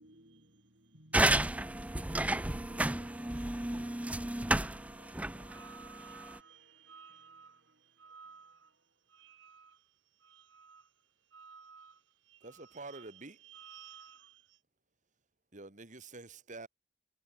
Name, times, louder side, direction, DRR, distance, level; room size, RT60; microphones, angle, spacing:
voice 1, 0.0-8.6, right 1 dB, 60° right, 7.5 m, -60 dB
sound 1, 1.1-6.4, right 1 dB, 5° right, 0.5 m, -32 dB
voice 2, 5.0-8.7 9.1-10.9 11.3-14.6, right 6 dB, 75° right, 2.6 m, -56 dB
voice 3, 12.4-13.4 15.5-16.7, right 3 dB, 40° right, 2.2 m, -47 dB
head